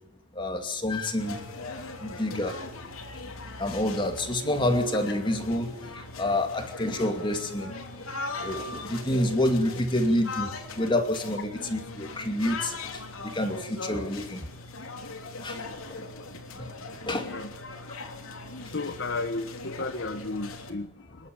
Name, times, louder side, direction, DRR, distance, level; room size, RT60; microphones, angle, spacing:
voice 1, 0.4-1.7 2.0-2.6 3.6-7.7 8.4-10.5 10.7-12.7 13.3-14.5 15.4-15.6 17.1-17.3, left 1 dB, 20° left, 5 dB, 2.5 m, -28 dB
sound 1, 1.2-20.7, left 3 dB, 70° left, 3.1 m, -40 dB
voice 2, 18.7-21.3, left 3 dB, 50° left, 7 dB, 1.2 m, -33 dB
26.5 x 11.5 x 8.8 m, 0.85 s
head